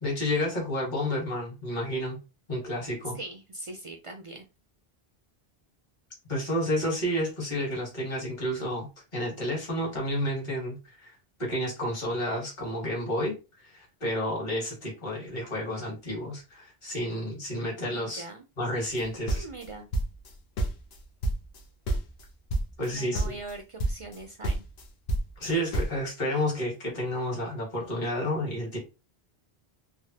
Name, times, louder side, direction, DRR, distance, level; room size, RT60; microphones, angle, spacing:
voice 1, 0.0-2.2 2.5-3.2 6.3-18.2 18.6-19.4 22.8-23.4 25.4-28.8, equal, 50° left, 1.5 m, -31 dB
voice 2, 3.1-4.5 17.9-18.4 19.3-19.9 22.9-24.6, right 2 dB, 50° right, 0.4 m, -41 dB
sound 1, 19.0-20.3 20.6-21.6 21.9-22.2 22.5-22.9 23.1-23.5 23.8-24.2 24.4-26.0, right 2 dB, 85° left, 0.9 m, -29 dB
3.4 x 2.1 x 2.7 m
omnidirectional pair, 1.0 m